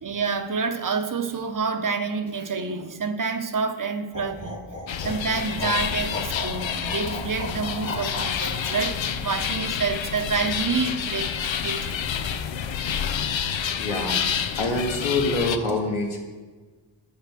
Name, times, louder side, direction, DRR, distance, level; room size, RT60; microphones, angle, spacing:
voice 1, 0.0-4.6 5.0-12.0 14.4-14.6, right 5 dB, 40° right, 8 dB, 0.9 m, -28 dB
sound 1, 4.1-8.9, left 2 dB, 30° left, 2.0 m, -35 dB
sound 2, 4.9-15.6, left 8 dB, 70° left, 0.7 m, -28 dB
voice 2, 13.7-14.2 14.6-16.2, left 2 dB, 85° left, -1 dB, 2.0 m, -25 dB
8.1 x 6.7 x 6.1 m, 1.4 s
cardioid pair, 60°, 48 cm